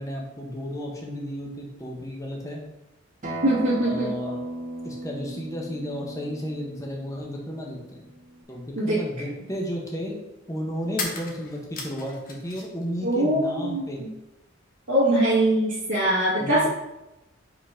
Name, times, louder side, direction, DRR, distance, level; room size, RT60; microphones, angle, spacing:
voice 1, 0.0-2.6 3.8-4.4 4.8-8.1 8.5-10.2 10.5-14.0 16.4-16.6, equal, 15° left, -2 dB, 1.1 m, -33 dB
Acoustic guitar, 3.2-8.4, right 1 dB, 40° right, 1.2 m, -36 dB
voice 2, 3.4-4.1 8.8-9.0 13.0-14.1 14.9-16.7, right 1 dB, 65° right, -10 dB, 1.9 m, -22 dB
sound 1, 11.0-12.9 13.1-14.0, left 3 dB, 45° left, 1.0 m, -36 dB
5.0 x 4.0 x 5.0 m, 0.95 s
head